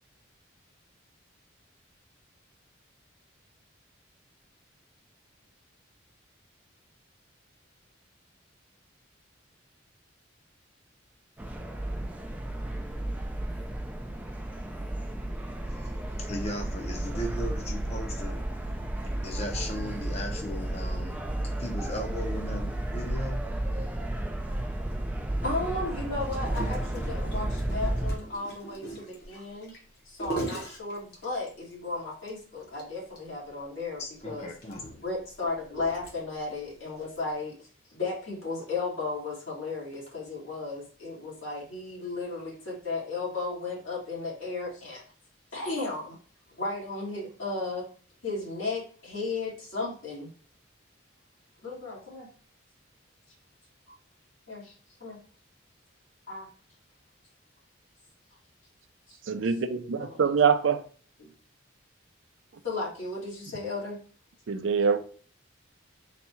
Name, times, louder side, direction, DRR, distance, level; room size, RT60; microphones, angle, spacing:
sound 1, 11.4-28.2, right 1 dB, 10° right, 0.3 m, -33 dB
voice 1, 16.3-18.4 19.2-21.2 21.6-23.5 34.0-34.9, equal, 30° left, 0.6 m, -36 dB
voice 2, 25.4-29.8 30.1-34.5 35.0-45.0 45.5-46.2 46.6-47.9 48.2-50.3 51.6-52.3 53.9-54.0 54.5-54.7 55.0-55.2 56.3-56.5 60.0-60.2 61.2-61.3 62.6-64.0, left 3 dB, 85° left, 2.1 m, -34 dB
Gurgling, 26.2-31.7 32.2-32.3 32.6-32.8 33.2-33.3 34.0-36.5 37.2-37.3, right 2 dB, 50° left, 1.0 m, -40 dB
voice 3, 59.3-60.8 64.5-65.0, right 6 dB, 70° right, 0.4 m, -24 dB
4.0 x 2.3 x 4.2 m
head